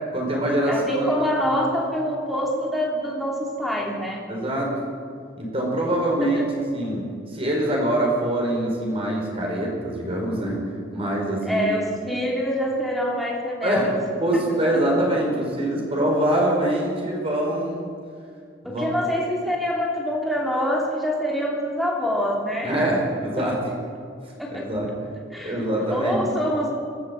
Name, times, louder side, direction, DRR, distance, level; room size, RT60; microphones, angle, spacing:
voice 1, 0.1-1.0 1.4-1.5 4.3-4.7 5.4-6.4 6.7-11.7 13.6-13.9 14.2-17.9 18.6-18.9 22.6-23.6 24.5-24.9 25.4-26.3, right 1 dB, 30° right, -1 dB, 5.2 m, -24 dB
voice 2, 0.7-4.3 6.2-6.5 11.4-14.0 14.3-14.8 18.6-22.7 23.4-23.5 24.4-24.7 25.3-26.7, equal, ahead, -2 dB, 2.9 m, -26 dB
23.0 x 17.0 x 8.4 m, 2.2 s
head